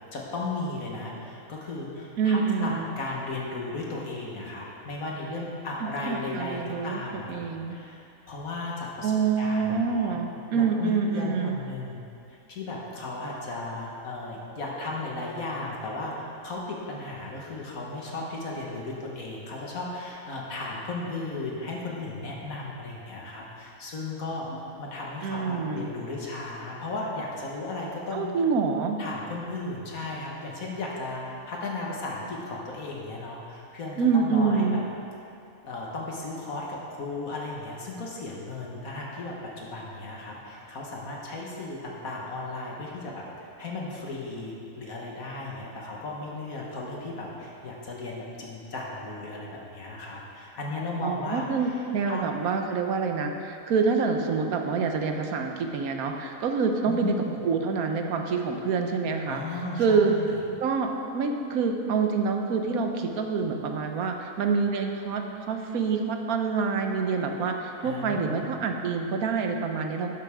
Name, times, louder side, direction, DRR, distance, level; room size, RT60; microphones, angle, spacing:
voice 1, 0.1-7.4 7.7-8.0 8.3-10.2 10.5-12.0 12.3-24.5 24.8-28.3 29.0-34.8 35.6-51.8 52.0-52.3 56.9-57.4 59.3-60.3 67.8-68.5, left 2 dB, 70° left, -3 dB, 1.9 m, -35 dB
voice 2, 2.2-2.9 5.8-7.0 7.3-7.8 9.0-11.6 25.2-25.9 28.1-29.0 34.0-34.8 51.0-59.4 59.8-60.2 60.6-70.1, right 5 dB, 75° right, 4 dB, 1.3 m, -26 dB
11.0 x 11.0 x 3.6 m, 2.7 s
omnidirectional pair, 1.5 m